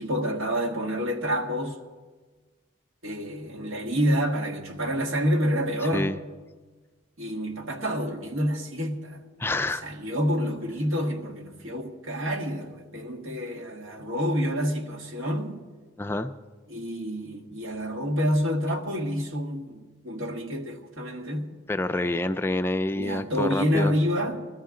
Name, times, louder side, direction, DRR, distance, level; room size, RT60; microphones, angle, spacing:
voice 1, 0.0-1.8 3.0-6.1 7.2-9.2 9.8-15.6 16.7-21.5 22.9-24.5, equal, 85° right, 1.7 m, -28 dB
voice 2, 9.4-9.8 16.0-16.3 21.7-23.9, left 2 dB, 10° left, 0.3 m, -27 dB
21.0 x 13.5 x 3.8 m
head